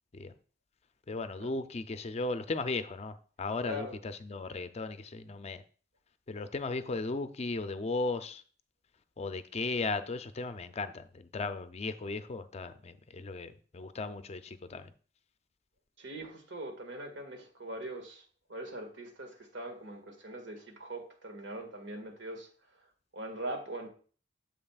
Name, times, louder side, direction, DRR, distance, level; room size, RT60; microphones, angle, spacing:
voice 1, 1.1-5.6 6.3-8.4 9.2-14.9, left 3 dB, 35° left, 0.4 m, -36 dB
voice 2, 3.7-4.0 16.0-18.2 18.5-22.5 23.1-23.9, right 1 dB, 80° right, 1.8 m, -41 dB
8.7 x 7.3 x 2.4 m
head